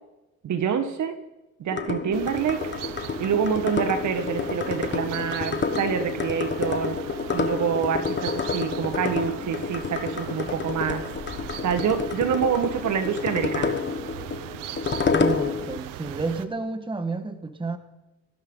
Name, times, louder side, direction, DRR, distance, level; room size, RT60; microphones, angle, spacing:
voice 1, 0.4-1.1 1.6-2.6 3.2-7.0 7.3-11.0 11.6-13.8, right 7 dB, 65° right, 9 dB, 1.5 m, -26 dB
sound 1, 1.7-15.8, left 5 dB, 35° left, 1.4 m, -29 dB
sound 2, 2.1-16.5, right 13 dB, 90° right, 0.8 m, -39 dB
voice 2, 15.1-17.8, right 3 dB, 15° right, 8 dB, 1.6 m, -30 dB
19.0 x 15.5 x 4.0 m, 1.0 s
cardioid pair, 85°, 32 cm